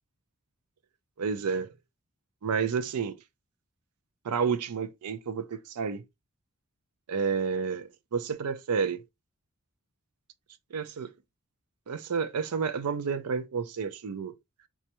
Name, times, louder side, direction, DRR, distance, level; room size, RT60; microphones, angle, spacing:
voice 1, 1.2-1.7 2.4-3.2 4.2-6.0 7.1-9.0 10.7-11.1 11.9-14.3, right 6 dB, 85° right, 0.5 m, -30 dB
4.1 x 2.4 x 2.8 m
head